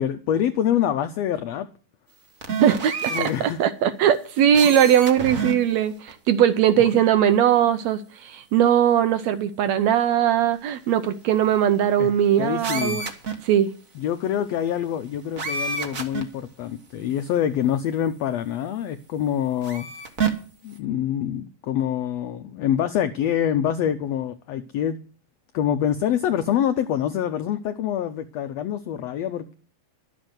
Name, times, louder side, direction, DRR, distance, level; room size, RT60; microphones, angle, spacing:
voice 1, 0.0-1.7 3.1-3.6 6.8-6.9 12.0-12.1 12.4-13.0 13.9-19.9 20.6-25.0 25.5-29.5, left 10 dB, 85° left, 9 dB, 1.4 m, -25 dB
sound 1, 2.4-3.3 4.5-5.5 6.1-6.2 12.6-13.3 15.4-16.2 17.2-17.3 19.6-20.3, right 5 dB, 60° right, 0.9 m, -28 dB
voice 2, 2.6-13.1 13.4-13.7, right 10 dB, 75° right, 11 dB, 1.7 m, -20 dB
12.0 x 7.3 x 7.9 m, 0.39 s
omnidirectional pair, 3.8 m